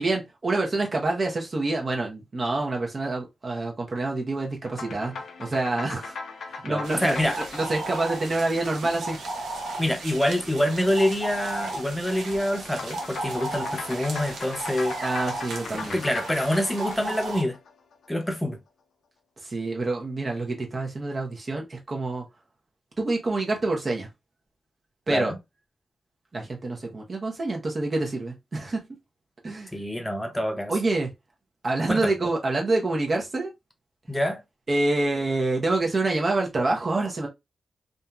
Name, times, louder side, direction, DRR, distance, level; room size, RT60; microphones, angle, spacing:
voice 1, 0.0-5.1 5.4-6.1 6.5-9.2 15.0-16.0 19.4-22.2 23.0-24.1 25.1-25.3 26.3-28.8 29.4-29.7 30.7-31.1 31.6-33.5 34.7-37.3, right 2 dB, 50° right, 1.0 m, -27 dB
sound 1, 4.7-9.3 12.7-18.1, left 4 dB, 75° left, 0.5 m, -39 dB
voice 2, 6.7-7.4 9.8-15.0 15.7-17.6 18.1-18.6 25.1-25.4 29.7-30.7 31.9-32.1 34.1-34.4, left 1 dB, 10° left, 0.7 m, -26 dB
sound 2, 6.8-17.4, right 2 dB, 75° right, 0.7 m, -35 dB
2.7 x 2.4 x 2.4 m
supercardioid pair, 45°, 0 cm